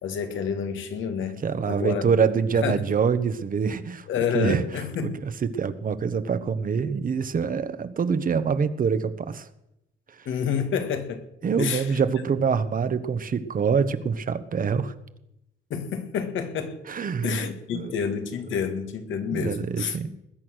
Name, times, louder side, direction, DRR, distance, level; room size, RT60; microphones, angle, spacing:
voice 1, 0.0-2.1 2.6-2.8 4.1-5.1 10.3-11.2 11.6-12.0 15.7-16.8 17.2-20.0, left 7 dB, 75° left, 2.1 m, -29 dB
voice 2, 1.4-4.1 4.3-9.5 10.2-10.3 11.4-14.9 16.9-17.5 17.7-18.1 19.3-20.1, right 6 dB, 45° right, 1.2 m, -25 dB
20.5 x 8.6 x 6.4 m
cardioid pair, 90°, 20 cm